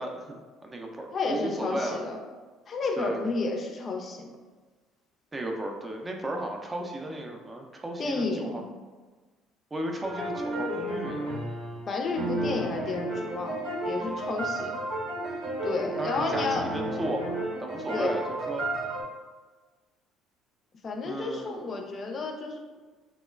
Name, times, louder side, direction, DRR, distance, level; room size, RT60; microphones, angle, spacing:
voice 1, 0.0-2.0 3.0-3.2 5.3-8.6 9.7-11.3 14.0-14.3 16.0-18.7 21.0-21.8, right 1 dB, 25° right, 2 dB, 0.4 m, -35 dB
voice 2, 1.1-2.2 2.7-4.3 8.0-8.7 11.9-14.8 15.6-16.7 17.9-18.2 20.8-22.6, left 3 dB, 45° left, 2 dB, 0.4 m, -31 dB
sound 1, 10.0-19.0, right 1 dB, 75° right, 0.8 m, -32 dB
3.0 x 2.1 x 2.2 m, 1.3 s
hypercardioid pair, 60°, 0 cm